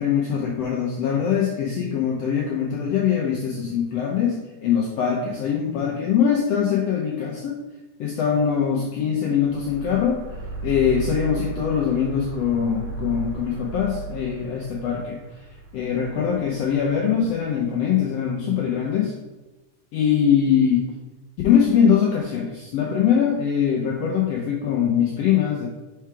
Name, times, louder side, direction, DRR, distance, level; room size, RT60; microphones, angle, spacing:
voice 1, 0.0-7.6 8.0-10.2 10.6-15.2 15.7-19.1 19.9-20.9 21.4-25.7, left 8 dB, 80° left, -1 dB, 1.4 m, -22 dB
sound 1, 9.4-17.7, right 4 dB, 60° right, 1.4 m, -36 dB
4.7 x 4.5 x 4.7 m, 1.1 s
omnidirectional pair, 3.7 m